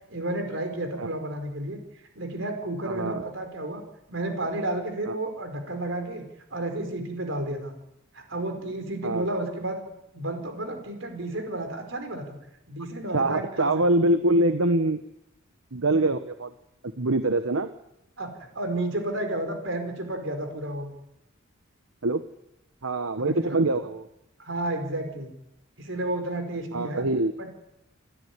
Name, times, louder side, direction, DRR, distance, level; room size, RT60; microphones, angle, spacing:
voice 1, 0.1-1.8 2.1-3.8 4.1-6.2 6.5-7.7 8.1-9.8 10.1-12.3 12.7-13.7 18.2-20.9 23.2-23.6 24.4-25.3 25.8-27.0 27.4-27.5, right 1 dB, 60° right, 6 dB, 5.1 m, -31 dB
voice 2, 2.8-3.2 5.1-5.2 9.0-9.2 13.1-15.0 15.7-16.5 16.8-17.7 22.0-22.2 22.8-24.1 26.7-27.3, right 2 dB, 80° right, 9 dB, 1.1 m, -24 dB
28.0 x 13.0 x 9.7 m, 0.85 s
head